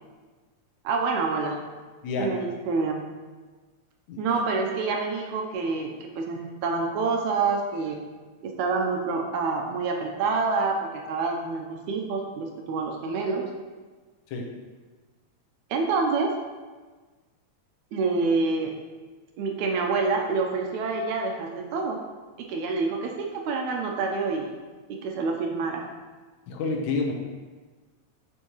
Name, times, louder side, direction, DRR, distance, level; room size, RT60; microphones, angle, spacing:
voice 1, 0.8-1.6 2.2-3.1 4.2-8.0 8.4-13.4 15.7-16.4 17.9-18.8 19.4-22.0 22.5-24.5 24.9-25.9, right 4 dB, 80° right, 1 dB, 2.0 m, -27 dB
voice 2, 26.5-27.1, left 4 dB, 75° left, 1 dB, 2.1 m, -28 dB
8.2 x 5.3 x 3.0 m, 1.4 s
omnidirectional pair, 3.4 m